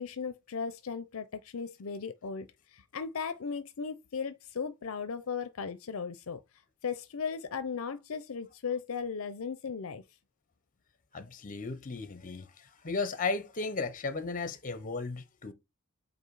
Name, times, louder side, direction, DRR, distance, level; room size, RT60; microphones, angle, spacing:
voice 1, 0.0-6.4 6.8-10.0, left 6 dB, 70° left, 0.5 m, -37 dB
voice 2, 11.1-15.5, left 3 dB, 40° left, 0.8 m, -35 dB
7.8 x 2.6 x 4.7 m
head